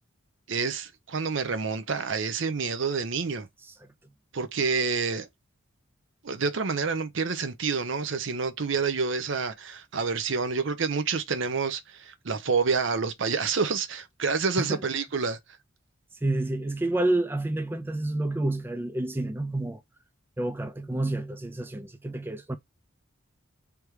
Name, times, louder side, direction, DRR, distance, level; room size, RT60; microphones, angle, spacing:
voice 1, 0.5-3.5 4.3-5.3 6.2-15.4, right 5 dB, 60° right, 0.6 m, -28 dB
voice 2, 16.1-19.8 20.4-22.6, right 2 dB, 10° right, 0.3 m, -29 dB
3.4 x 3.2 x 4.6 m
head